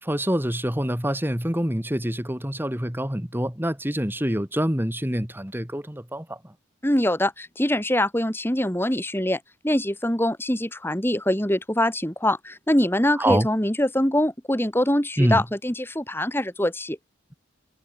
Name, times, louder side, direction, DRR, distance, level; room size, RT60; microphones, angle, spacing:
voice 1, 0.0-6.5 13.1-13.5 15.2-15.4, equal, 10° right, 2.9 m, -26 dB
voice 2, 6.8-17.0, left 1 dB, 10° left, 2.8 m, -24 dB
head